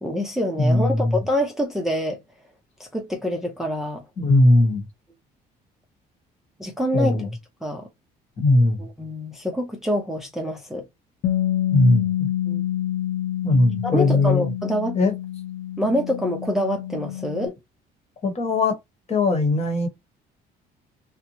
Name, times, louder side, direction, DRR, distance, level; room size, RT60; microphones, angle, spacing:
voice 1, 0.0-2.2 2.8-4.0 6.6-7.2 7.6-7.9 8.8-10.8 12.5-12.6 13.8-15.0 15.8-17.5, equal, ahead, 0.5 m, -26 dB
voice 2, 0.6-1.2 4.2-4.8 6.9-7.3 8.4-8.8 11.7-12.3 13.4-14.5 14.9-15.1 18.2-18.8 19.1-19.9, left 2 dB, 40° left, 1.1 m, -19 dB
Bass guitar, 11.2-17.5, left 12 dB, 60° left, 0.5 m, -27 dB
2.8 x 2.1 x 2.9 m
cardioid pair, 110°, 17 cm